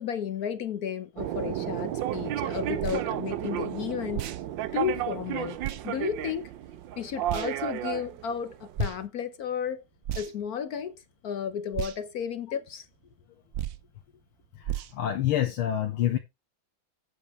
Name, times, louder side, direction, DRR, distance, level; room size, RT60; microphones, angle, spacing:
voice 1, 0.0-4.3 4.7-5.6 5.8-6.5 7.0-9.8 10.2-10.9 11.2-12.9, left 8 dB, 60° left, 1.0 m, -33 dB
sound 1, 1.2-9.1, right 12 dB, 70° right, 1.3 m, -33 dB
sound 2, 2.8-3.0 4.1-4.4 5.6-5.8 7.3-7.5 8.7-9.0 10.0-10.5 11.7-12.0 13.5-13.8 14.6-14.9, right 11 dB, 85° right, 0.7 m, -33 dB
voice 2, 14.6-16.2, left 11 dB, 80° left, 2.0 m, -27 dB
8.7 x 7.1 x 4.5 m
omnidirectional pair, 2.3 m